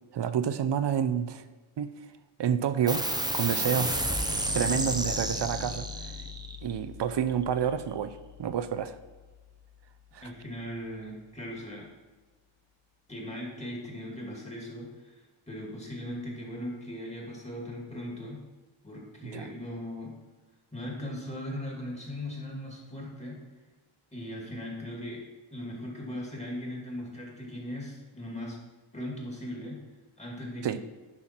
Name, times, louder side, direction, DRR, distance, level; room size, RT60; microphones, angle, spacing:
voice 1, 0.1-1.4 1.8-1.9 2.4-3.0 3.3-4.0 4.5-5.9 6.6-8.9 10.1-10.3 19.3-19.5 30.6-30.8, right 8 dB, 60° right, 12 dB, 0.6 m, -29 dB
sound 1, 2.9-9.8, right 1 dB, 10° right, 0.7 m, -33 dB
voice 2, 10.2-11.9 13.1-18.4 18.8-20.1 20.7-23.4 24.1-25.2 25.5-28.6 28.9-29.8 30.2-30.8, left 1 dB, 15° left, -2 dB, 2.3 m, -39 dB
10.5 x 5.7 x 4.5 m, 1.3 s
wide cardioid pair, 140°, 48 cm